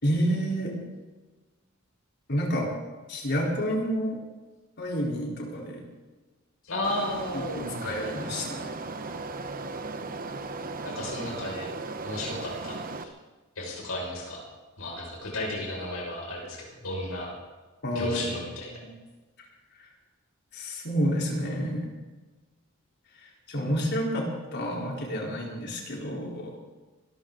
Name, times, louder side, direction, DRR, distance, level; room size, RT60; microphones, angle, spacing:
voice 1, 0.0-0.7 2.3-2.7 3.1-4.2 4.8-5.8 7.3-8.7 17.8-18.3 18.8-18.9 19.8-19.9 20.5-21.9 23.2-26.5, equal, 55° left, -2 dB, 4.1 m, -29 dB
voice 2, 6.6-8.0 10.8-11.7 12.0-13.1 13.6-14.4 14.8-17.3 17.9-18.8, left 1 dB, 85° left, -3 dB, 6.1 m, -33 dB
sound 1, 6.8-13.0, right 3 dB, 45° right, 1.0 m, -37 dB
24.5 x 13.5 x 4.0 m, 1.2 s
head